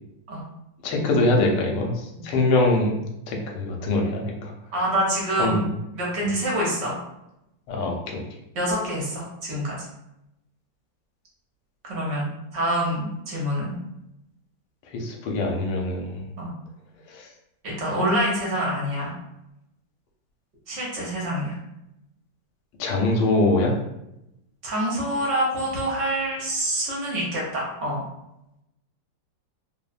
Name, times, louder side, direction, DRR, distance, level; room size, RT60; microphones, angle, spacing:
voice 1, 0.8-3.0 3.3-4.5 5.4-5.7 7.7-8.2 14.9-16.2 17.1-17.3 22.8-23.8, left 2 dB, 70° left, 0 dB, 1.1 m, -23 dB
voice 2, 4.7-5.6 5.9-7.0 8.5-9.8 11.8-13.7 16.4-16.5 17.6-19.1 20.7-21.6 24.6-28.0, right 1 dB, 60° right, -4 dB, 0.7 m, -26 dB
3.1 x 2.1 x 2.4 m, 0.86 s
omnidirectional pair, 2.1 m